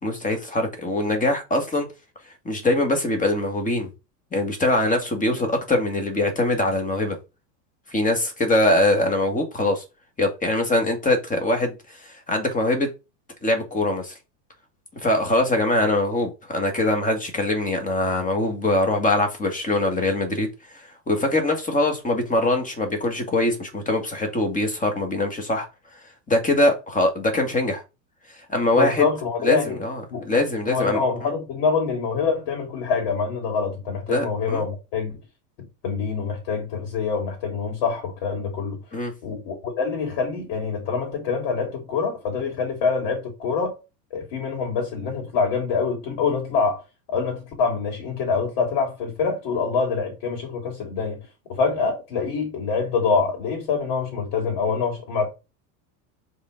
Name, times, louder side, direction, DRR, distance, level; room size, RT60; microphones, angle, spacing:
voice 1, 0.0-1.9 2.5-3.9 4.3-7.2 7.9-9.8 10.2-12.9 13.4-14.1 15.0-25.7 26.3-27.8 28.5-29.1 29.4-31.3 34.1-34.6 38.9-39.1, left 2 dB, 15° left, 1.9 m, -23 dB
voice 2, 28.7-29.8 30.1-30.3 30.7-35.2 35.8-38.8 39.2-43.7 44.1-46.8 47.1-51.2 51.5-55.3, left 5 dB, 55° left, 3.4 m, -25 dB
5.3 x 3.9 x 5.2 m
supercardioid pair, 135°, 50 cm